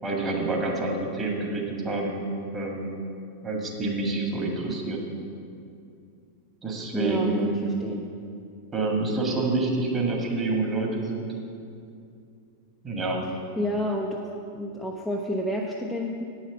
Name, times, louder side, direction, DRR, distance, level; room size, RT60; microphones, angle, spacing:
voice 1, 0.0-2.2 2.5-3.0 3.4-5.0 6.6-7.5 8.7-11.3 12.8-13.3, right 2 dB, 20° right, -1 dB, 1.8 m, -27 dB
voice 2, 6.9-8.0 13.6-16.2, equal, ahead, -2 dB, 0.7 m, -30 dB
9.0 x 6.4 x 7.1 m, 2.5 s
figure-of-eight pair, 90°, 0 cm